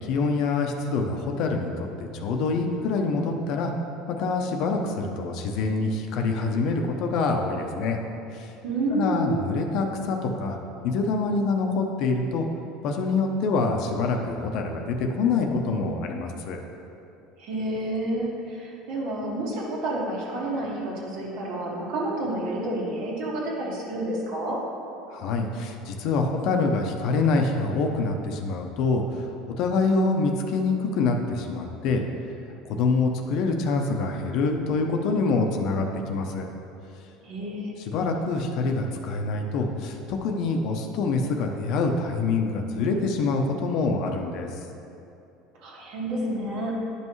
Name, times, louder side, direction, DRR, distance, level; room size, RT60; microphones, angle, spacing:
voice 1, 0.0-3.7 4.1-8.0 8.3-8.5 8.9-10.6 10.8-12.5 12.8-16.6 25.1-32.0 32.6-36.5 37.9-44.5, left 3 dB, 60° left, 3 dB, 0.7 m, -26 dB
voice 2, 8.6-9.4 17.4-24.6 37.2-37.7 45.6-46.9, right 1 dB, 60° right, -4 dB, 1.8 m, -29 dB
10.5 x 5.5 x 3.2 m, 2.8 s
supercardioid pair, 135°, 0 cm